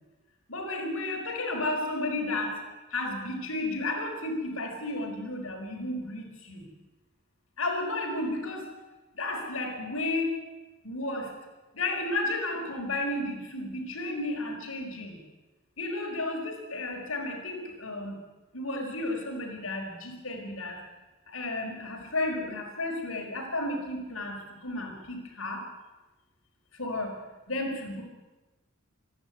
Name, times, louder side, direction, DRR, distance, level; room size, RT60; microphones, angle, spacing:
voice 1, 0.5-2.6 2.9-6.6 7.6-8.7 9.1-10.4 10.8-11.4 11.7-15.2 15.8-18.2 18.5-20.8 21.3-25.7 26.7-28.0, left 2 dB, 85° left, 3 dB, 5.2 m, -33 dB
26.5 x 11.5 x 9.3 m, 1.1 s
head